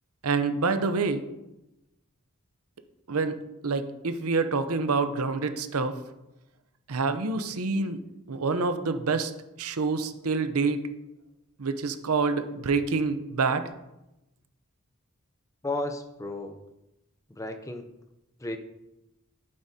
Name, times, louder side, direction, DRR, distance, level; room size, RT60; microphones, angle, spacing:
voice 1, 0.2-1.2 3.1-3.3 3.6-5.9 6.9-8.0 8.3-9.3 9.6-10.9 11.6-13.6, right 4 dB, 85° right, 9 dB, 0.7 m, -27 dB
voice 2, 15.6-16.6 17.3-17.9 18.4-18.6, left 2 dB, 15° left, 6 dB, 0.6 m, -33 dB
11.5 x 8.8 x 2.8 m, 0.94 s
head